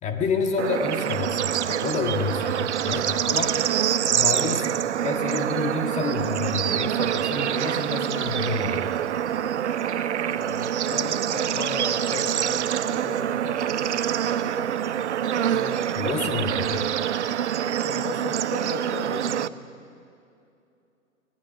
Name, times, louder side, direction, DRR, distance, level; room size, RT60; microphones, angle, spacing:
voice 1, 0.0-3.6 4.1-4.7 5.0-8.9 15.9-16.9, left 4 dB, 15° left, 4 dB, 1.7 m, -29 dB
Bird / Insect / Frog, 0.6-19.5, right 9 dB, 55° right, 0.6 m, -26 dB
voice 2, 3.9-4.4 10.2-12.5 12.8-14.9 15.4-15.9 17.8-19.5, left 4 dB, 45° left, 3 dB, 4.5 m, -37 dB
25.5 x 19.0 x 5.5 m, 2.5 s
figure-of-eight pair, 115°, 42 cm